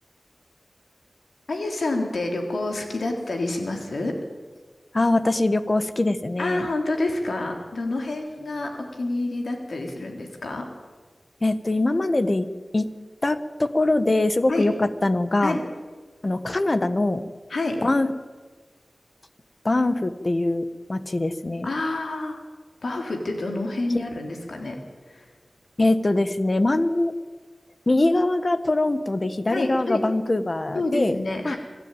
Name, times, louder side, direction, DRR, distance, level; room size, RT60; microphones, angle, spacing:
voice 1, 1.5-4.1 6.4-10.7 14.5-14.6 15.4-15.6 17.5-17.8 21.6-22.4 22.8-24.8 25.1-25.3 29.5-30.0 30.7-31.6, left 2 dB, 85° left, 3 dB, 3.5 m, -28 dB
voice 2, 4.9-6.7 11.4-12.4 12.7-12.9 13.2-15.6 16.2-17.2 17.8-18.1 19.6-21.7 25.8-27.1 27.9-31.2 31.4-31.6, left 2 dB, 45° left, 12 dB, 1.3 m, -22 dB
24.0 x 13.0 x 9.1 m, 1.4 s
wide cardioid pair, 55°, 0 cm